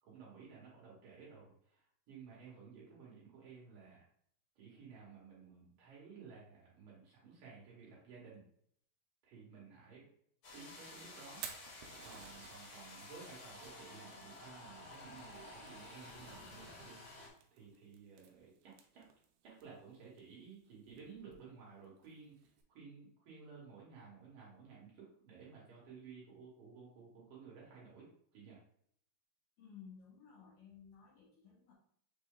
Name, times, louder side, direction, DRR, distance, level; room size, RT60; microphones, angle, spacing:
voice 1, 0.0-4.0 4.6-8.4 9.2-10.0 10.5-11.6 12.0-17.0 17.5-19.1 19.4-28.6, right 5 dB, 65° right, -5 dB, 2.5 m, -55 dB
sound 1, 10.4-17.3, left 2 dB, 50° left, 1.5 m, -53 dB
Fire, 11.2-22.6, right 8 dB, 80° right, 2.6 m, -57 dB
voice 2, 29.6-31.7, left 7 dB, 75° left, -3 dB, 2.1 m, -56 dB
6.1 x 2.2 x 3.7 m, 0.67 s
omnidirectional pair, 4.6 m